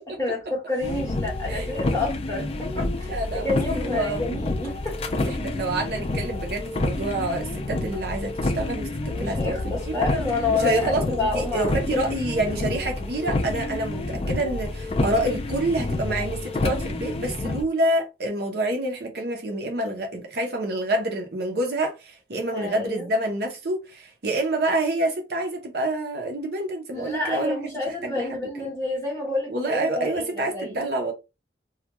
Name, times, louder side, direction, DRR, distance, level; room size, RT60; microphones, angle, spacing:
voice 1, 0.2-3.2 3.4-4.9 9.1-12.0 22.5-23.1 26.9-30.9, left 3 dB, 15° left, 1.1 m, -29 dB
sound 1, 0.8-17.6, left 2 dB, 35° left, 0.4 m, -29 dB
voice 2, 3.1-4.2 5.1-9.9 10.5-27.6 27.9-28.7 29.5-31.1, right 1 dB, 60° right, 0.7 m, -27 dB
2.3 x 2.2 x 2.8 m
head